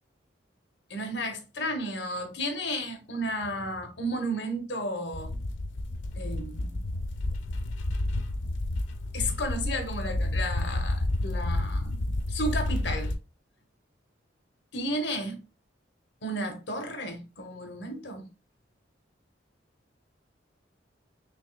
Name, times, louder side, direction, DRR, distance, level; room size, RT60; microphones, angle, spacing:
voice 1, 0.9-5.3 6.2-6.8 9.1-12.0 12.3-13.1 14.7-15.4 16.2-18.3, equal, 70° left, 1.1 m, -33 dB
sound 1, 5.1-13.2, left 1 dB, 90° left, 0.6 m, -30 dB
5.5 x 3.3 x 2.3 m
head